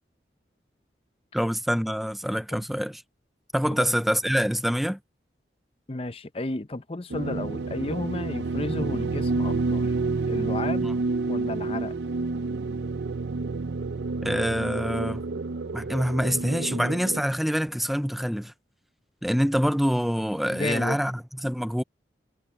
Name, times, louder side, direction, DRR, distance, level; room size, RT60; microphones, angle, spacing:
voice 1, 1.3-3.0 3.5-5.0 10.8-10.9 14.2-15.2 15.7-18.5 19.2-21.8, equal, ahead, 0.5 m, -26 dB
voice 2, 5.9-10.0 10.3-10.9 11.2-11.9 20.5-21.0, left 2 dB, 30° left, 0.7 m, -32 dB
sound 1, 7.1-17.2, right 3 dB, 75° right, 0.5 m, -29 dB
head